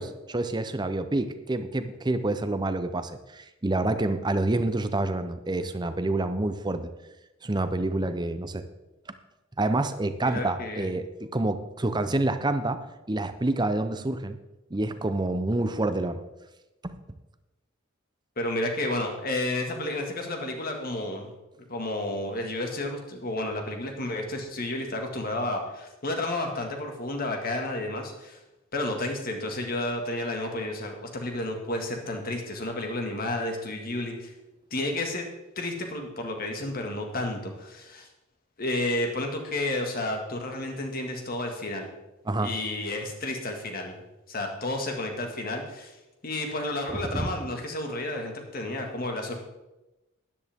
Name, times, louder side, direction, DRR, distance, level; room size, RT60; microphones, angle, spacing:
voice 1, 0.0-6.9 7.4-8.6 9.6-14.4 14.7-16.2 16.8-17.0 42.3-42.5 46.9-47.3, right 2 dB, 20° right, 10 dB, 0.6 m, -28 dB
voice 2, 10.2-10.9 18.4-21.3 21.7-28.4 28.7-34.3 34.7-35.3 35.6-38.1 38.6-41.9 42.4-43.9 44.3-45.9 46.2-49.3, left 2 dB, 45° left, 3 dB, 1.9 m, -31 dB
12.5 x 10.5 x 3.6 m, 1.0 s
head